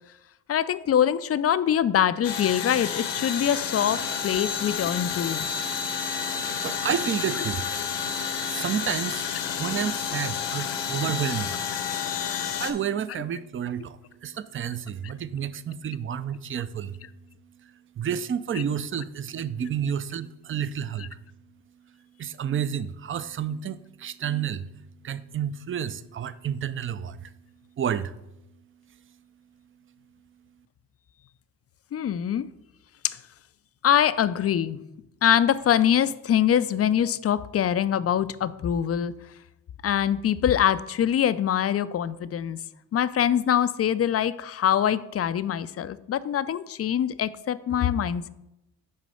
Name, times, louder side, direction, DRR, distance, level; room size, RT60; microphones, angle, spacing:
voice 1, 0.5-5.5 7.4-7.5 15.0-15.1 18.5-18.6 31.9-32.5 33.0-33.2 33.8-34.8 35.2-39.1 39.8-42.6 42.9-48.3, left 9 dB, 35° left, 15 dB, 0.4 m, -24 dB
sound 1, 2.2-12.7, left 7 dB, 70° left, 0.9 m, -30 dB
voice 2, 6.6-7.6 8.5-9.3 9.6-11.6 12.6-17.0 18.0-21.2 22.2-24.6 25.0-27.3 27.8-28.1, right 8 dB, 30° right, 14 dB, 0.4 m, -30 dB
6.3 x 4.1 x 5.4 m, 0.88 s
hypercardioid pair, 45°, 45 cm